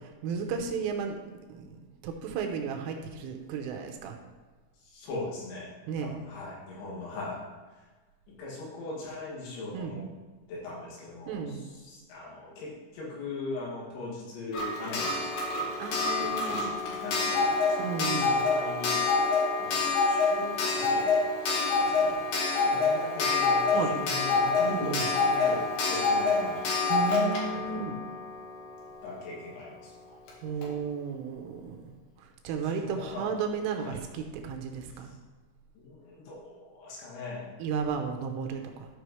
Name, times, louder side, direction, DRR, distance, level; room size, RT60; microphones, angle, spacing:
voice 1, 0.2-1.2 1.5-4.2 5.9-6.2 9.7-10.0 11.3-11.7 15.8-16.7 17.8-18.4 23.7-24.0 24.7-25.0 26.9-28.0 30.4-31.9 32.2-35.1 37.6-38.9, right 6 dB, 85° right, 4 dB, 3.2 m, -34 dB
voice 2, 4.8-7.4 7.7-7.8 8.3-10.0 10.5-15.8 16.2-19.1 19.6-19.8 20.1-21.1 21.4-22.2 22.6-26.7 27.5-27.8 29.0-29.9 32.6-33.3 33.7-34.0 34.9-35.1 35.8-37.5, left 3 dB, 90° left, -6 dB, 5.3 m, -40 dB
Clock, 14.5-29.1 30.3-30.4 30.6-30.7, left 4 dB, 60° left, 2.6 m, -27 dB
14.0 x 6.1 x 3.2 m, 1.3 s
omnidirectional pair, 6.0 m